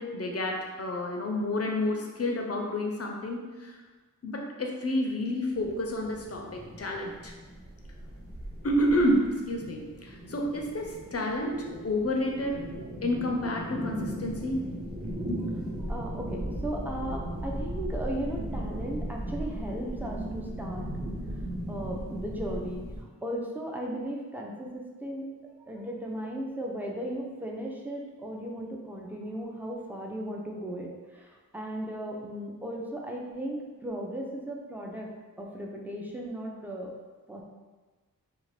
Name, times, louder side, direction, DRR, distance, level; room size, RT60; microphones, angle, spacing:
voice 1, 0.0-3.8 4.2-7.3 8.6-12.6 13.0-14.6 15.3-15.7, left 1 dB, 45° left, 1 dB, 0.6 m, -30 dB
sound 1, 5.5-23.0, right 1 dB, 40° right, 0.9 m, -37 dB
voice 2, 15.8-20.9 21.7-25.3 25.6-35.1 35.4-36.9 37.3-37.4, right 1 dB, 5° right, -1 dB, 0.5 m, -36 dB
2.5 x 2.4 x 3.2 m, 1.3 s
cardioid pair, 45°, 35 cm